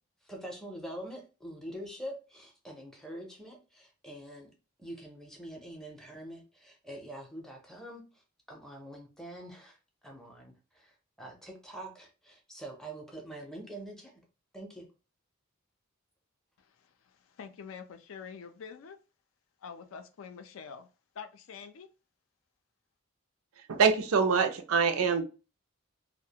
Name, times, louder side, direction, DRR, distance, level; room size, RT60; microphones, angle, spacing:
voice 1, 0.2-4.5 4.8-8.0 8.5-9.8 10.0-14.1 14.5-14.9, right 1 dB, ahead, 0.5 m, -45 dB
voice 2, 17.4-19.0 19.6-20.9 21.2-21.9, left 6 dB, 70° left, 0.4 m, -45 dB
voice 3, 23.7-25.2, right 5 dB, 90° right, 0.4 m, -25 dB
2.4 x 2.1 x 2.7 m
head